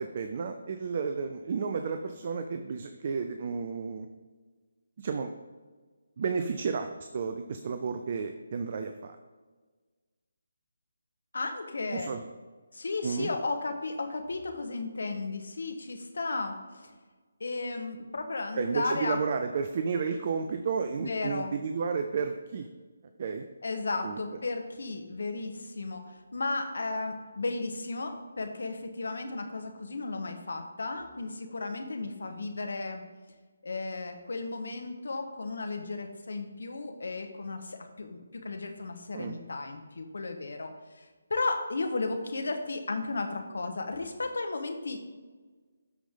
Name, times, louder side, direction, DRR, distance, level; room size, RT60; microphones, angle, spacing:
voice 1, 0.0-4.1 5.0-5.3 6.2-6.9 7.1-9.2 11.9-12.2 13.0-13.3 18.5-22.7 23.2-23.4 24.0-24.2 39.1-39.4, right 5 dB, 40° right, 7 dB, 0.6 m, -32 dB
voice 2, 11.3-12.1 12.7-16.9 17.4-19.2 21.0-21.5 23.6-33.0 33.6-45.0, left 3 dB, 65° left, 6 dB, 1.4 m, -34 dB
13.0 x 5.1 x 3.8 m, 1.4 s
figure-of-eight pair, 150°, 0 cm